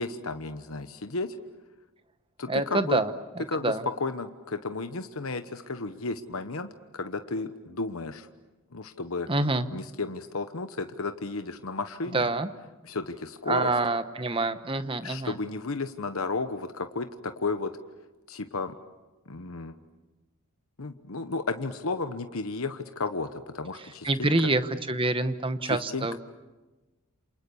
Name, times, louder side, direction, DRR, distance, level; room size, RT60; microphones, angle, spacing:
voice 1, 0.0-1.4 2.4-3.0 3.5-3.7 4.0-6.7 6.9-8.3 8.7-9.3 9.7-12.3 12.8-13.7 15.0-17.7 18.3-18.7 19.3-19.7 20.8-24.5 25.6-26.2, left 3 dB, 70° left, 8 dB, 1.1 m, -33 dB
voice 2, 2.5-3.8 9.3-9.7 12.1-12.5 13.5-15.3 24.0-26.2, right 2 dB, 25° right, 10 dB, 1.1 m, -27 dB
29.0 x 27.5 x 7.1 m, 1.1 s
head